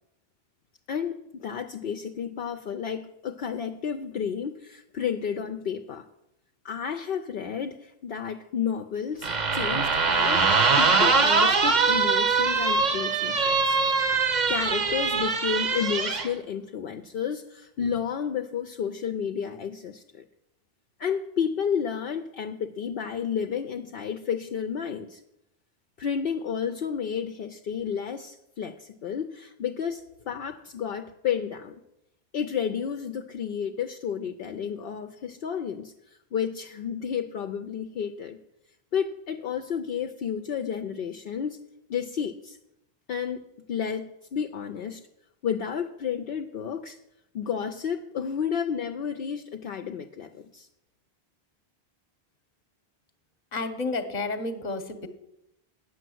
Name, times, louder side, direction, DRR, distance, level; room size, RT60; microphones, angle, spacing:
voice 1, 0.9-6.0 6.6-13.8 14.5-20.2 21.0-25.2 26.0-31.8 32.3-35.9 36.3-38.4 38.9-41.6 41.9-42.6 43.1-45.0 45.4-47.0 47.3-50.7, left 7 dB, 65° left, 6 dB, 0.8 m, -31 dB
sound 1, 9.2-16.3, right 4 dB, 45° right, 0.9 m, -23 dB
voice 2, 53.5-55.1, left 3 dB, 45° left, 9 dB, 1.0 m, -31 dB
9.0 x 6.9 x 7.7 m, 0.85 s
omnidirectional pair, 1.1 m